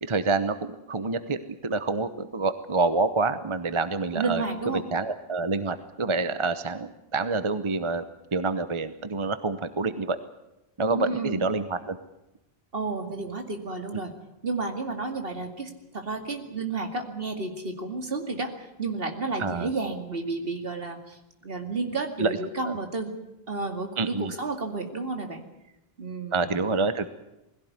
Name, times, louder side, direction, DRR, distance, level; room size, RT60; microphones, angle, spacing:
voice 1, 0.0-4.4 4.9-8.0 8.3-10.2 10.8-12.0 13.9-14.0 19.4-19.7 22.2-22.4 22.7-22.8 24.0-24.3 26.3-27.1, right 3 dB, 30° right, 11 dB, 0.9 m, -27 dB
voice 2, 4.1-4.8 10.9-11.5 12.7-14.1 14.4-21.2 21.4-23.1 23.5-25.4 26.0-26.6, right 3 dB, 65° right, 5 dB, 2.6 m, -31 dB
21.0 x 16.5 x 9.5 m, 0.91 s
omnidirectional pair, 1.0 m